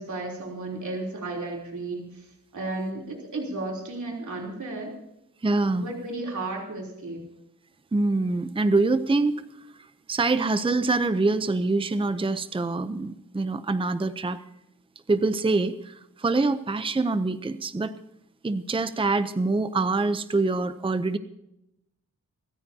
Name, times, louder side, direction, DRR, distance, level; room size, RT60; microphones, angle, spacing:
voice 1, 0.0-4.9 5.8-7.3, right 2 dB, 60° right, 0 dB, 3.5 m, -34 dB
voice 2, 5.4-5.9 7.9-9.4 10.1-14.4 15.1-18.0 18.4-21.2, right 3 dB, 15° right, 11 dB, 0.6 m, -25 dB
26.0 x 14.0 x 2.8 m, 0.83 s
wide cardioid pair, 110°, 33 cm